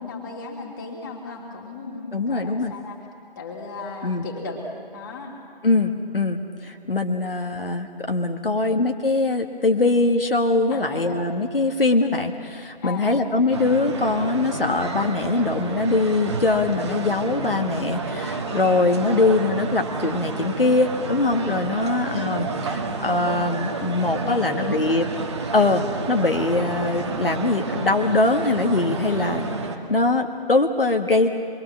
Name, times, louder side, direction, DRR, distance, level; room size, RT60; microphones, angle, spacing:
voice 1, 0.0-3.0 3.4-5.3 8.4-8.7 10.7-11.0 12.8-13.2 21.8-22.2 24.1-24.8 29.1-29.4, left 4 dB, 20° left, 0 dB, 2.7 m, -36 dB
voice 2, 2.1-2.7 4.0-4.3 5.6-25.1 25.5-29.4 29.9-31.3, left 3 dB, 70° left, 4 dB, 1.7 m, -22 dB
sound 1, 13.5-29.8, right 4 dB, 30° right, 1.6 m, -30 dB
26.0 x 22.5 x 7.4 m, 2.6 s
figure-of-eight pair, 150°, 30 cm